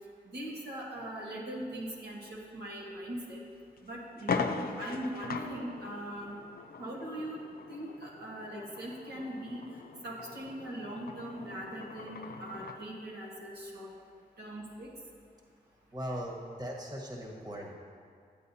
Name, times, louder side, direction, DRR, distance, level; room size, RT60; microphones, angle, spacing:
voice 1, 0.2-3.4 3.8-6.3 6.8-7.4 7.7-9.6 10.0-13.9 14.4-14.9, right 1 dB, 85° right, -5 dB, 1.6 m, -40 dB
sound 1, 3.2-3.3 3.8-3.9 4.2-12.8, left 5 dB, 65° left, 0.5 m, -40 dB
voice 2, 15.9-17.8, equal, 25° right, -1 dB, 1.5 m, -39 dB
10.5 x 8.1 x 2.8 m, 2.1 s
cardioid pair, 50°, 17 cm